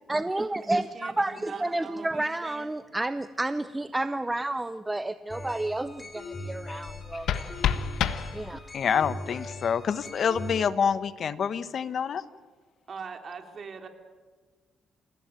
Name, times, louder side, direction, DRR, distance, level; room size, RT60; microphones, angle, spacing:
voice 1, 0.1-7.6 8.3-8.6, right 2 dB, 15° right, 12 dB, 0.7 m, -30 dB
voice 2, 0.7-2.8 12.9-13.9, right 5 dB, 50° right, 5 dB, 3.4 m, -41 dB
sound 1, 5.3-10.7, left 1 dB, 20° left, 5.0 m, -40 dB
sound 2, 6.8-8.9, left 9 dB, 75° left, 1.4 m, -30 dB
voice 3, 8.7-12.2, left 7 dB, 55° left, 14 dB, 1.1 m, -27 dB
28.5 x 17.0 x 9.0 m, 1.5 s
cardioid pair, 90°, 0 cm